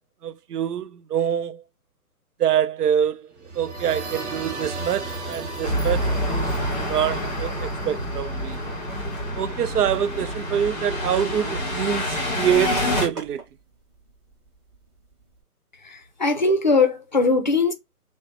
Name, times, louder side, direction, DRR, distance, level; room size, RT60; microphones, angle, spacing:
voice 1, 0.2-1.6 2.4-8.6 9.4-13.4, right 9 dB, 85° right, 0.6 m, -25 dB
sound 1, 3.4-9.1, right 2 dB, 50° right, 1.4 m, -35 dB
sound 2, 5.6-13.1, left 1 dB, 5° left, 0.8 m, -27 dB
sound 3, 12.1-15.4, right 2 dB, 20° right, 1.0 m, -43 dB
voice 2, 15.8-17.7, left 3 dB, 30° left, 0.5 m, -20 dB
6.2 x 2.1 x 3.1 m
hypercardioid pair, 165°, 45 cm